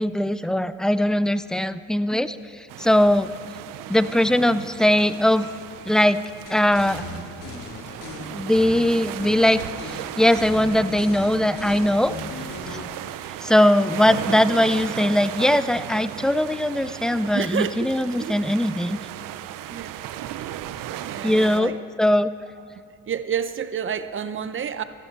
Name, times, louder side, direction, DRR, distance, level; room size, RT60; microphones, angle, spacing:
voice 1, 0.0-2.4 2.8-3.3 3.9-5.5 5.9-6.2 6.5-7.0 8.3-9.6 9.9-12.1 12.7-12.8 13.4-19.0 21.2-21.7 22.0-22.3, left 1 dB, ahead, 14 dB, 0.3 m, -20 dB
sound 1, 2.7-21.6, right 12 dB, 75° right, 0.7 m, -36 dB
sound 2, 6.5-8.2 8.5-9.5 9.8-10.0 10.3-12.9, left 3 dB, 70° left, 3.0 m, -37 dB
voice 2, 17.3-18.4 19.7-20.0 20.4-20.5 21.0-21.8 22.7-24.8, right 7 dB, 40° right, 12 dB, 0.7 m, -30 dB
15.0 x 14.0 x 4.4 m, 2.5 s
cardioid pair, 85°, 33 cm